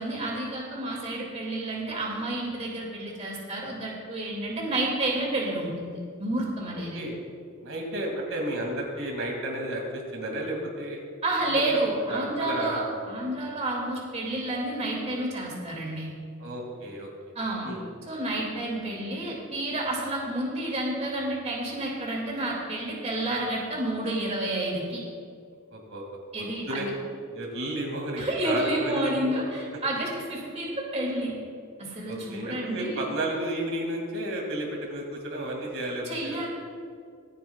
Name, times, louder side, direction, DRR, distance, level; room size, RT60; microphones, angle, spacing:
voice 1, 0.0-7.0 11.2-12.8 13.1-16.1 17.3-17.7 18.1-25.0 26.3-26.9 28.2-31.4 31.8-33.1 36.0-36.5, right 1 dB, 30° right, -2 dB, 2.4 m, -30 dB
voice 2, 7.6-11.0 11.4-11.8 12.1-12.8 16.4-17.1 17.6-17.8 25.7-26.0 26.7-26.9 27.3-29.4 32.1-36.4, right 1 dB, 65° right, -1 dB, 2.4 m, -32 dB
25.5 x 9.2 x 2.4 m, 2.2 s
head